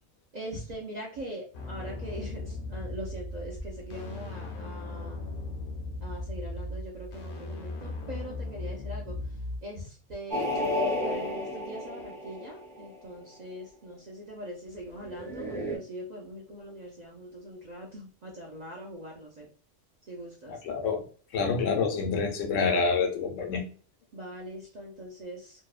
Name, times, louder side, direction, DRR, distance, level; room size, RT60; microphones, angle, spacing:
voice 1, 0.3-5.2 6.0-9.2 9.6-19.5 20.1-20.5 24.1-25.7, equal, 55° right, -1 dB, 0.4 m, -41 dB
sound 1, 1.5-9.6, left 2 dB, 55° left, 0.6 m, -37 dB
sound 2, 10.3-12.9 15.1-15.8, left 1 dB, 5° left, 0.4 m, -32 dB
voice 2, 20.5-21.0 21.3-23.6, left 5 dB, 85° left, 4 dB, 1.0 m, -27 dB
2.7 x 2.1 x 2.3 m, 0.40 s
omnidirectional pair, 1.3 m